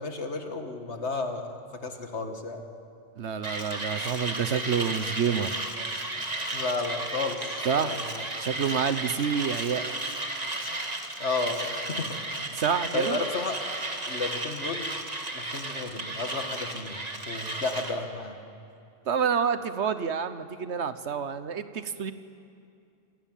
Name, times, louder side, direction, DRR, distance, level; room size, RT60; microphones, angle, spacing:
voice 1, 0.0-2.6 6.5-8.2 11.2-12.2 12.9-13.6 14.1-14.9 15.3-18.4, left 3 dB, 85° left, 5 dB, 2.2 m, -33 dB
voice 2, 3.2-5.5 7.6-8.0 8.4-9.9 12.5-13.2 19.1-22.1, right 7 dB, 90° right, 12 dB, 1.3 m, -28 dB
Mechanisms, 3.4-18.0, right 2 dB, 35° right, 2.0 m, -34 dB
27.0 x 19.0 x 9.2 m, 2.5 s
omnidirectional pair, 1.1 m